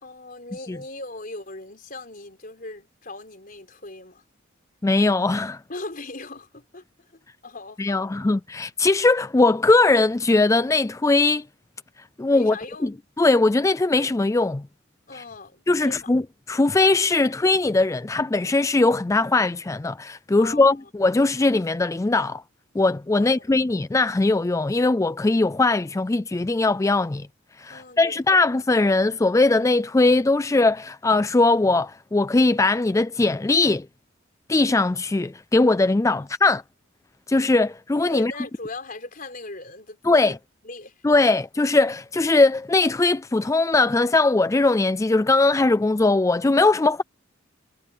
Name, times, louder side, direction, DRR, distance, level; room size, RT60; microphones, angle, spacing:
voice 1, 0.0-4.2 5.7-8.1 12.3-13.0 15.1-16.1 20.4-20.8 23.1-23.6 27.7-28.2 36.2-36.3 38.1-40.4 40.6-41.0, left 2 dB, 45° left, 4.8 m, -39 dB
voice 2, 4.8-5.6 7.8-11.4 12.2-12.6 12.8-12.9 13.2-14.6 15.1-15.2 15.7-16.2 16.5-22.4 22.7-27.3 27.6-33.9 34.5-36.6 37.3-38.3 40.0-40.4 41.0-47.0, left 2 dB, 15° left, 0.4 m, -20 dB
head